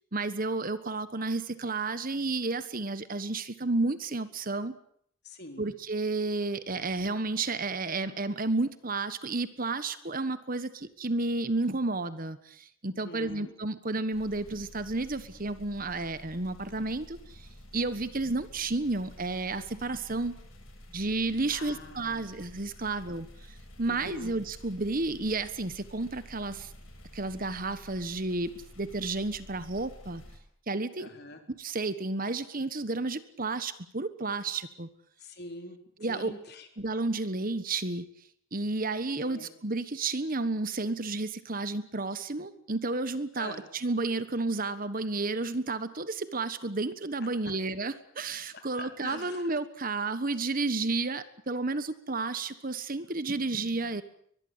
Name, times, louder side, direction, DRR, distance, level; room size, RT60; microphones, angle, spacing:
voice 1, 0.1-4.7 5.6-17.5 17.7-20.3 20.9-23.3 23.8-26.7 27.1-28.5 28.8-30.2 30.7-31.1 31.5-34.9 36.0-36.3 36.8-38.1 38.5-54.0, right 3 dB, 40° right, 13 dB, 1.4 m, -31 dB
voice 2, 5.2-5.7 13.0-13.5 21.5-22.2 22.8-22.9 23.9-24.3 31.0-31.4 35.2-35.8 36.1-36.7 39.2-39.5 43.4-43.6 47.4-47.5 48.5-49.5, left 2 dB, 50° left, 5 dB, 4.0 m, -44 dB
sound 1, 14.1-30.4, equal, 70° left, 7.7 m, -50 dB
23.0 x 21.5 x 8.2 m, 0.65 s
head